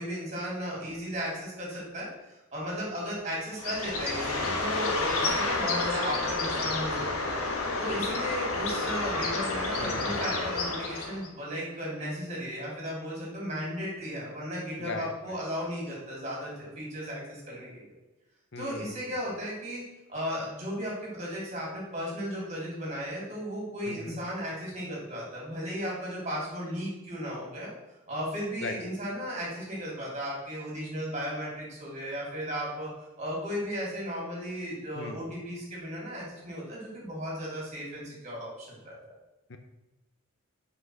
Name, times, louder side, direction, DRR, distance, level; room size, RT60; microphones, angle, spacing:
voice 1, 0.0-2.1 2.5-7.3 7.8-17.8 18.5-19.8 20.1-27.7 28.1-32.9 33.2-39.1, equal, 30° right, -5 dB, 3.2 m, -35 dB
Bird, 3.5-11.3, left 3 dB, 80° left, 1.3 m, -30 dB
voice 2, 9.8-10.6 14.8-15.4 18.5-19.2 23.8-24.2 28.6-28.8 34.9-35.2 39.5-39.6, left 3 dB, 50° left, 7 dB, 0.6 m, -39 dB
5.9 x 5.6 x 6.2 m, 1.0 s
head